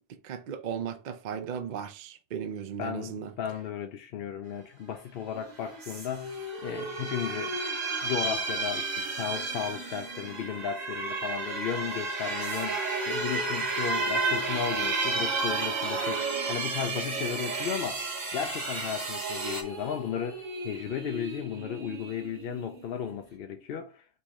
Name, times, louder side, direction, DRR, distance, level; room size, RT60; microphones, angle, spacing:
voice 1, 0.1-3.3, right 8 dB, 55° right, 0.5 m, -36 dB
voice 2, 2.8-7.6 8.0-18.0 18.3-24.1, left 8 dB, 65° left, 0.6 m, -35 dB
sound 1, 5.3-11.3 11.8-17.8 18.2-23.3, equal, 85° right, 1.8 m, -42 dB
sound 2, 5.8-5.9 6.3-19.6, right 4 dB, 35° right, 1.0 m, -32 dB
4.5 x 3.0 x 3.5 m
omnidirectional pair, 1.3 m